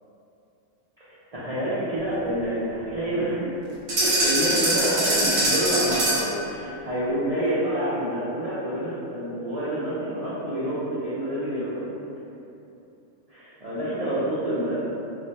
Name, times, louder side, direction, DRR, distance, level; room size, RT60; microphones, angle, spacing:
voice 1, 1.0-3.5 3.9-11.7 13.3-14.8, right 1 dB, 65° right, -11 dB, 0.3 m, -28 dB
sound 1, 3.9-6.4, right 1 dB, 45° right, 0.9 m, -23 dB
2.4 x 2.2 x 3.9 m, 2.9 s
omnidirectional pair, 1.4 m